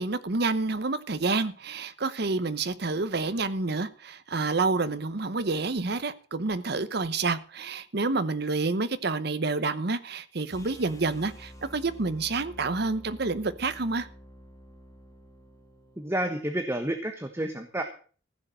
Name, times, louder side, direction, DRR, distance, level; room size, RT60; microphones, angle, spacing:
voice 1, 0.0-14.1, right 3 dB, 55° right, 0.9 m, -28 dB
sound 1, 10.5-16.6, equal, 15° left, 1.9 m, -49 dB
voice 2, 16.0-17.8, right 1 dB, 15° right, 1.2 m, -30 dB
15.5 x 6.8 x 7.6 m
head